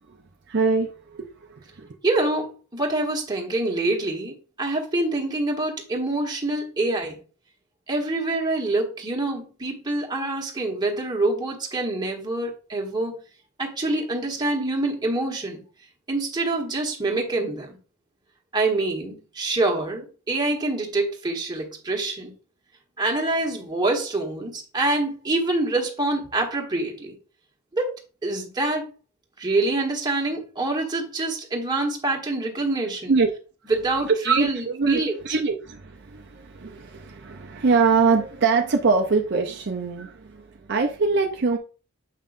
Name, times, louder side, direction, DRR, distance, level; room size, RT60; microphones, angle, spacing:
voice 1, 0.5-1.9 33.1-33.3 34.1-41.6, right 4 dB, 55° right, 3 dB, 0.6 m, -23 dB
voice 2, 2.0-7.2 7.9-13.1 13.6-15.6 16.1-17.8 18.5-22.3 23.0-27.2 27.7-28.0 28.2-28.8 29.4-33.1 33.7-35.2, right 2 dB, 20° right, 0 dB, 1.3 m, -26 dB
7.5 x 5.6 x 2.6 m, 0.36 s
head